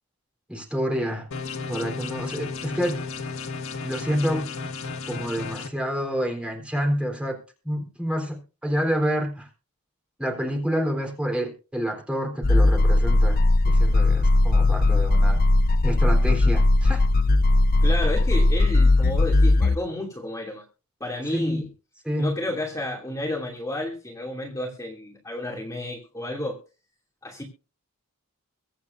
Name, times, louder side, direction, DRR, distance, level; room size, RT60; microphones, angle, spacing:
voice 1, 0.5-1.3 1.7-3.0 3.8-4.5 5.1-7.4 7.6-9.5 10.2-15.4 15.8-17.0 21.3-21.7 22.1-22.3, equal, 5° right, 1 dB, 3.8 m, -28 dB
sound 1, 1.3-5.7, left 4 dB, 65° left, 1.5 m, -33 dB
sound 2, 12.4-19.8, left 2 dB, 40° left, 0.5 m, -18 dB
voice 2, 17.8-20.6 21.0-21.7 22.2-26.6 27.2-27.4, left 1 dB, 15° left, -2 dB, 2.6 m, -31 dB
23.5 x 8.3 x 2.6 m, 0.33 s
head